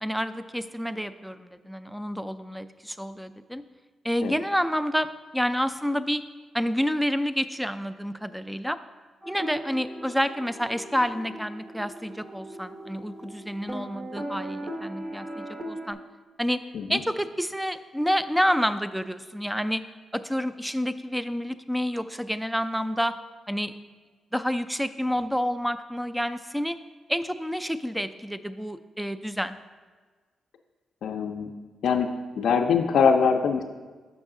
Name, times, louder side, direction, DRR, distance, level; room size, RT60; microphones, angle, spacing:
voice 1, 0.0-3.6 4.0-5.1 5.3-6.2 6.5-8.8 9.3-16.0 16.4-16.6 16.9-19.8 20.1-23.1 23.5-23.7 24.3-26.8 27.1-29.6, equal, ahead, 12 dB, 0.3 m, -29 dB
sound 1, 9.2-15.9, right 1 dB, 30° right, 0.8 m, -39 dB
voice 2, 31.0-31.5 31.8-32.1 32.4-33.6, left 6 dB, 75° left, 4 dB, 0.4 m, -23 dB
6.1 x 5.5 x 3.7 m, 1.4 s
cardioid pair, 75°, 0 cm